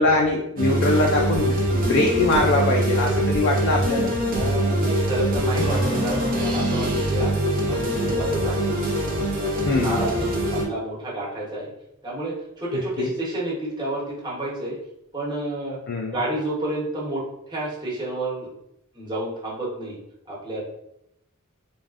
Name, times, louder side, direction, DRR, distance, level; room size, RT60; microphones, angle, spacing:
voice 1, 0.0-4.1 9.7-10.0 13.0-13.1 15.9-16.1, left 2 dB, 60° left, -1 dB, 0.4 m, -22 dB
sound 1, 0.6-10.6, right 1 dB, 40° right, 0.7 m, -23 dB
voice 2, 0.9-1.6 4.3-8.9 9.3-11.7 12.0-14.8 15.1-15.8 16.0-18.5 18.9-20.0 20.3-20.6, right 1 dB, 20° right, -7 dB, 1.0 m, -30 dB
Acoustic guitar / Strum, 5.5-10.3, equal, 15° left, 0.7 m, -37 dB
3.3 x 2.4 x 2.4 m, 0.79 s
head